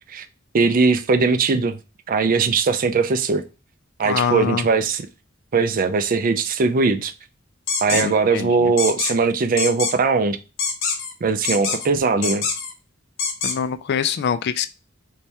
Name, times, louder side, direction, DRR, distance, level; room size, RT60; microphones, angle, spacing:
voice 1, 0.5-1.8 2.1-3.4 4.0-5.1 5.5-7.1 7.8-10.4 11.2-12.5, right 4 dB, 45° right, 0.4 m, -20 dB
voice 2, 4.0-4.6 7.9-8.7 13.4-14.7, left 7 dB, 55° left, 0.3 m, -24 dB
sound 1, 7.7-8.0 8.8-9.1 9.6-9.9 10.6-11.1 11.4-11.9 12.2-12.7 13.2-13.6, left 5 dB, 80° left, 0.8 m, -24 dB
3.3 x 3.2 x 2.8 m
head